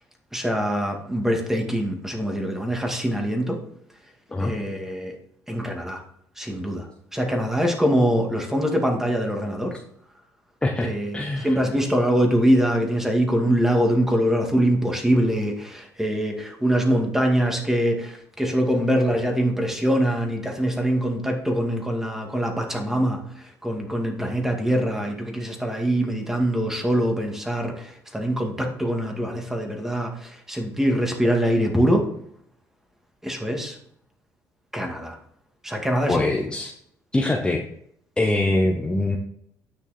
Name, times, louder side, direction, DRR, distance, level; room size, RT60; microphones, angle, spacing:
voice 1, 0.3-3.6 4.4-5.1 5.5-6.0 6.4-6.9 7.1-9.8 10.8-32.0 33.2-33.8 34.7-35.2 35.6-36.3, equal, 5° right, 2 dB, 2.2 m, -23 dB
voice 2, 10.6-11.6 36.1-36.7 37.1-37.6 38.2-39.2, left 2 dB, 15° left, 1 dB, 1.0 m, -23 dB
9.7 x 6.0 x 4.3 m, 0.68 s
cardioid pair, 100°, 7 cm